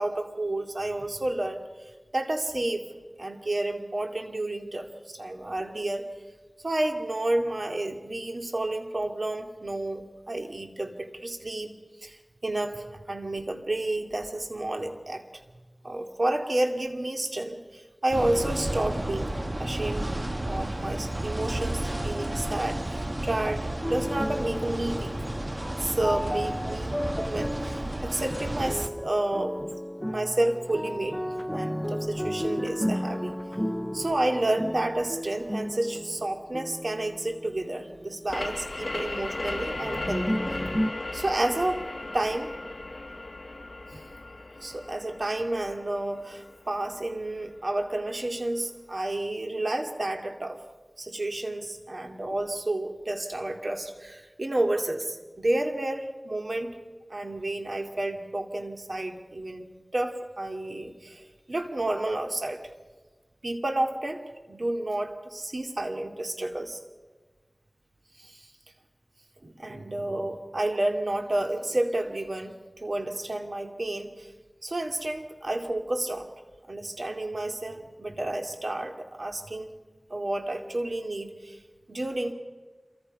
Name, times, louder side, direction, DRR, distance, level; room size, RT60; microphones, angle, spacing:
voice 1, 0.0-2.9 3.2-6.1 6.6-11.7 12.0-15.2 15.8-19.3 19.6-20.1 20.4-25.1 25.8-29.6 30.1-31.2 31.5-33.4 33.9-40.4 41.1-41.9 42.1-42.5 43.9-44.0 44.6-50.6 51.0-56.8 57.1-62.6 63.4-66.8 68.2-68.5 69.4-74.3 74.6-76.3 76.7-79.7 80.1-81.6 81.9-82.3, right 1 dB, 70° right, 4 dB, 2.4 m, -30 dB
sound 1, 18.1-28.9, right 1 dB, 40° right, 1.9 m, -32 dB
sound 2, 23.8-38.4 39.8-40.9, equal, 5° left, 0.6 m, -33 dB
sound 3, 38.3-47.7, left 2 dB, 70° left, 1.0 m, -37 dB
27.0 x 24.0 x 5.5 m, 1.3 s
wide cardioid pair, 40°, 0 cm